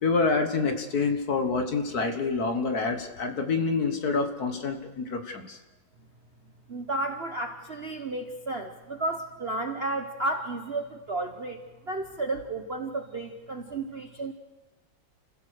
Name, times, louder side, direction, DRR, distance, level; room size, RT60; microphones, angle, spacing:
voice 1, 0.0-5.6, left 4 dB, 55° left, 7 dB, 1.9 m, -27 dB
voice 2, 6.7-14.3, right 2 dB, 40° right, 5 dB, 1.0 m, -32 dB
29.5 x 16.0 x 6.5 m, 1.2 s
omnidirectional pair, 2.1 m